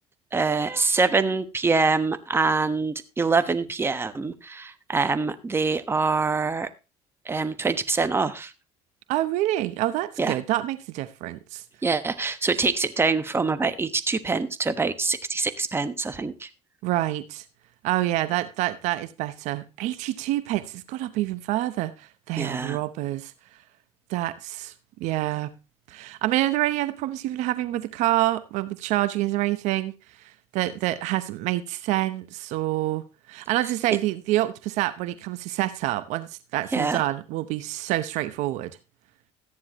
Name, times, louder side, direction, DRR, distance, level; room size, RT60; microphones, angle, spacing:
voice 1, 0.3-6.7 7.2-8.5 10.2-10.4 11.8-16.5 22.4-22.8 36.7-37.0, right 4 dB, 20° right, 1.2 m, -25 dB
voice 2, 9.1-11.6 16.8-17.4 17.8-23.3 24.1-24.7 25.0-25.5 25.9-29.9 30.2-38.8, right 15 dB, 70° right, 0.9 m, -27 dB
14.0 x 9.5 x 3.0 m
supercardioid pair, 90°, 12 cm